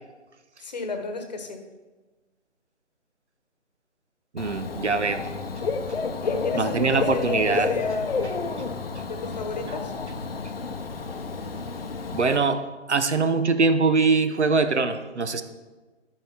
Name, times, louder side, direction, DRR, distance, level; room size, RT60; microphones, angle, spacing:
voice 1, 0.6-1.6 6.2-8.2 9.0-9.9, left 4 dB, 35° left, 5 dB, 1.3 m, -33 dB
voice 2, 4.3-5.3 6.5-7.7 12.1-12.6 12.9-15.4, right 4 dB, 65° right, 10 dB, 1.0 m, -22 dB
Dog / Bird, 4.4-12.4, left 4 dB, 50° left, 0.9 m, -30 dB
13.0 x 4.9 x 5.8 m, 1.2 s
figure-of-eight pair, 150°, 37 cm